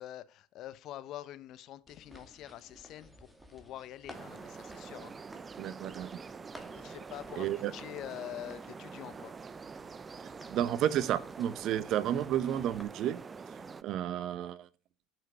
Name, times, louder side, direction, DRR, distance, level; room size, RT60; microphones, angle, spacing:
voice 1, 0.0-5.1 6.7-9.6, left 13 dB, 55° left, 0.9 m, -45 dB
sound 1, 1.9-12.8, equal, 5° right, 2.3 m, -56 dB
sound 2, 4.1-13.8, right 5 dB, 25° right, 0.6 m, -46 dB
voice 2, 5.6-6.2 7.4-7.7 10.5-13.2 13.5-14.7, right 11 dB, 55° right, 0.9 m, -32 dB
9.9 x 6.3 x 6.7 m
hypercardioid pair, 80°, 0 cm